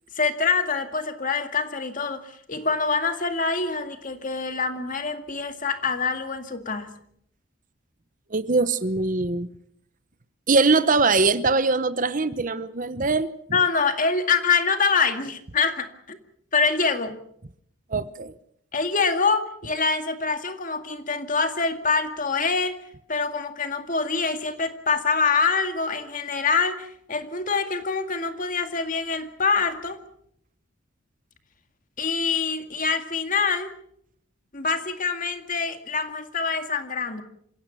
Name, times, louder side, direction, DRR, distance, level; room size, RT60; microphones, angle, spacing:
voice 1, 0.1-6.9 13.5-16.2 16.5-17.2 18.7-22.8 23.1-30.0 32.0-33.7 34.5-37.2, left 4 dB, 40° left, 8 dB, 2.1 m, -25 dB
voice 2, 8.3-9.5 10.5-13.3 17.9-18.3, right 3 dB, 40° right, 14 dB, 0.9 m, -22 dB
27.5 x 16.5 x 6.9 m, 0.68 s
head